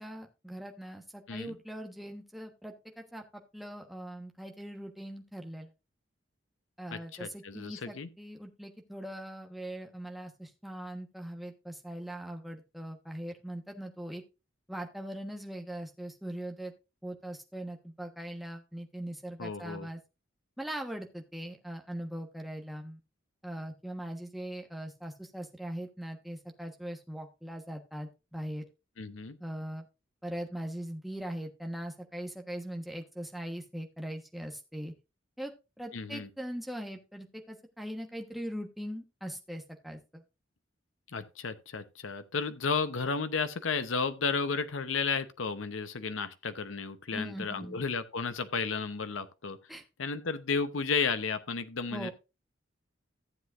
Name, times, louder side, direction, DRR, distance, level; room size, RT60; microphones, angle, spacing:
voice 1, 0.0-5.7 6.8-14.2 14.7-16.7 17.0-20.0 20.6-23.0 23.4-28.6 29.4-29.8 30.2-34.9 35.4-35.5 35.8-40.2 47.1-47.8 49.7-49.8 51.9-52.1, right 1 dB, ahead, 1.2 m, -41 dB
voice 2, 6.9-8.1 19.4-19.9 29.0-29.4 35.9-36.3 41.1-49.6 50.0-52.1, left 5 dB, 85° left, 0.8 m, -33 dB
14.5 x 7.8 x 2.5 m
head